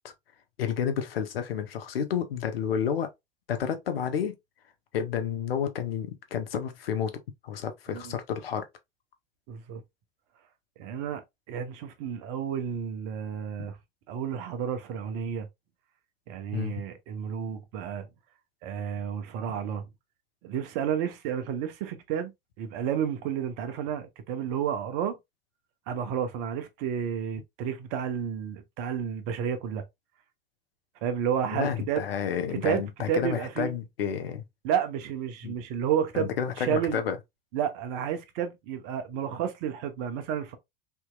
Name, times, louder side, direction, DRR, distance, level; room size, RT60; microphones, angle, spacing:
voice 1, 0.6-3.1 3.5-4.4 4.9-8.6 16.5-16.7 31.5-34.4 35.4-35.5 36.1-37.2, left 8 dB, 80° left, 0.8 m, -30 dB
voice 2, 9.5-9.8 10.8-11.2 11.5-13.8 14.1-15.5 16.3-18.1 18.6-19.9 20.4-22.3 22.6-25.2 25.9-29.8 31.0-32.0 32.6-33.7 34.6-37.0 37.5-40.6, right 8 dB, 55° right, 0.9 m, -31 dB
3.5 x 2.9 x 2.3 m
hypercardioid pair, 80°, 29 cm